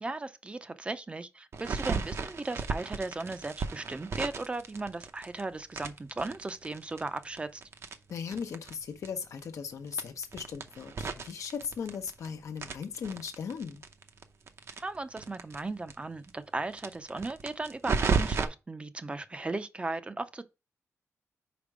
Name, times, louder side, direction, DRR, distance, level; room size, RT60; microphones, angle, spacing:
voice 1, 0.0-7.6 14.8-20.4, right 2 dB, 20° right, 0.5 m, -36 dB
sound 1, 1.5-5.4 5.7-8.8 9.0-9.1 9.4-9.5 9.9-12.3 12.6-15.6 15.9-16.0 16.2-16.3 16.7-18.5, right 5 dB, 60° right, 0.7 m, -34 dB
voice 2, 8.1-13.8, left 6 dB, 85° left, 0.9 m, -38 dB
5.1 x 4.5 x 4.8 m
wide cardioid pair, 130°, 5 cm